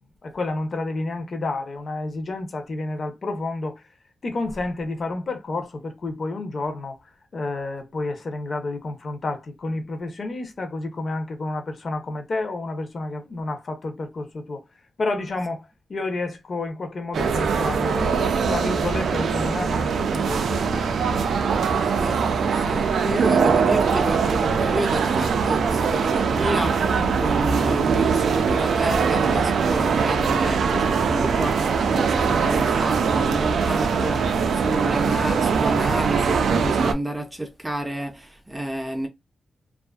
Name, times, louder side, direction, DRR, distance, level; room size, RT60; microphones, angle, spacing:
voice 1, 0.2-3.8 4.2-7.0 7.3-14.6 15.0-21.8 27.0-27.2, left 2 dB, 40° left, 0.6 m, -30 dB
sound 1, 17.1-36.9, right 5 dB, 80° right, 0.3 m, -22 dB
voice 2, 21.8-22.2 22.5-39.1, right 1 dB, 10° right, 0.4 m, -30 dB
2.5 x 2.4 x 2.3 m
wide cardioid pair, 150°, 0 cm